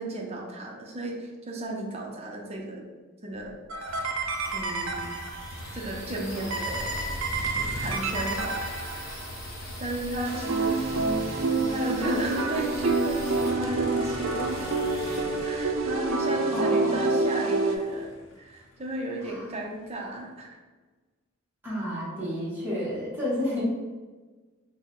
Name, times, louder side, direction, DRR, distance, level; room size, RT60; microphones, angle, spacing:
voice 1, 0.0-2.9 3.2-3.6 4.5-5.1 5.7-6.9 7.5-9.1 9.8-10.8 11.7-14.7 15.4-18.1 18.4-20.6, right 1 dB, 30° right, 0 dB, 0.6 m, -34 dB
sound 1, 3.4-16.1, left 1 dB, 15° left, 1.4 m, -43 dB
sound 2, 3.7-5.6 6.5-9.3 10.2-17.8, right 3 dB, 85° right, 0.5 m, -28 dB
Motor vehicle (road), 3.9-20.0, left 1 dB, 70° left, 0.5 m, -42 dB
voice 2, 16.5-17.2 19.2-19.6 21.6-23.6, left 1 dB, 10° right, -9 dB, 1.0 m, -31 dB
3.8 x 2.1 x 3.8 m, 1.3 s
head